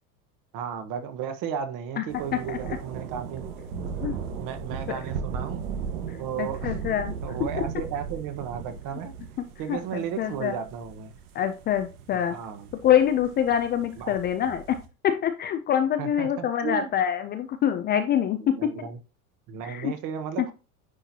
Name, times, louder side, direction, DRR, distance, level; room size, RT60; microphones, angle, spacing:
voice 1, 0.5-3.4 4.1-5.6 6.2-6.7 7.2-9.1 9.6-11.1 12.3-12.7 14.0-14.1 16.0-16.9 18.4-19.0 19.5-20.5, right 8 dB, 45° right, 1.3 m, -34 dB
sound 1, 2.1-14.9, right 6 dB, 80° right, 1.5 m, -37 dB
voice 2, 2.3-2.8 4.0-4.2 4.9-5.0 6.4-7.1 7.6-7.7 9.7-10.6 11.3-12.4 12.8-14.8 15.0-18.7 19.6-19.9 20.4-20.5, left 9 dB, 25° left, 0.4 m, -25 dB
10.0 x 4.5 x 2.8 m
supercardioid pair, 140°, 43 cm